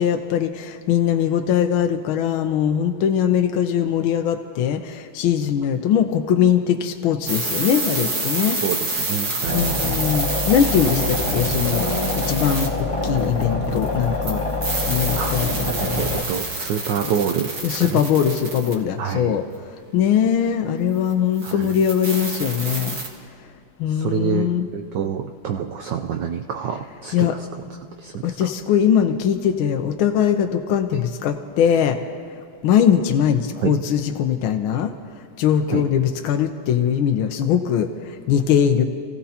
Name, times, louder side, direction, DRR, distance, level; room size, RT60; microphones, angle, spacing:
voice 1, 0.0-8.6 9.5-14.4 14.9-15.5 17.6-19.4 19.9-23.0 23.8-24.7 27.1-27.3 28.2-32.0 32.6-34.9 35.4-38.8, left 9 dB, 75° left, 5 dB, 1.5 m, -21 dB
sound 1, 7.3-13.4 13.7-18.7 21.1-21.2 21.4-23.1, right 2 dB, 45° right, 2.1 m, -28 dB
voice 2, 8.6-9.9 15.2-15.4 15.7-18.0 19.0-19.4 21.4-21.8 23.9-28.5 30.9-31.0 33.6-33.8 34.7-34.8 35.7-35.9, right 8 dB, 70° right, 4 dB, 1.1 m, -27 dB
sound 2, 9.5-16.2, left 2 dB, 25° left, 0.7 m, -25 dB
27.5 x 15.5 x 2.8 m, 2.4 s
omnidirectional pair, 2.4 m